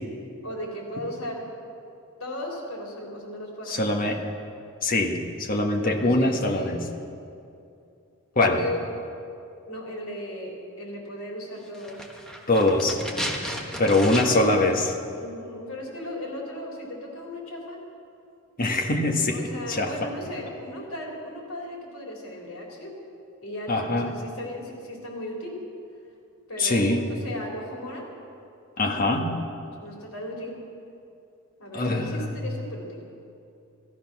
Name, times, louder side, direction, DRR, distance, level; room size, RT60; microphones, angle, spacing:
voice 1, 0.4-1.5 2.2-4.1 5.8-6.8 8.3-8.9 9.7-12.1 13.7-14.6 15.2-17.8 19.3-23.0 23.4-25.6 26.5-28.1 28.8-29.1 29.8-30.6 31.6-33.0, left 1 dB, 80° left, -2 dB, 3.8 m, -36 dB
voice 2, 3.7-4.2 4.8-6.8 8.3-8.6 12.5-13.0 13.8-14.9 18.6-19.4 19.7-20.1 23.7-24.1 26.6-27.0 28.8-29.3 31.7-32.3, left 2 dB, 45° left, 1 dB, 1.5 m, -23 dB
sound 1, 11.7-14.6 14.9-15.0, equal, 5° left, 1.4 m, -34 dB
16.5 x 13.5 x 6.1 m, 2.6 s
head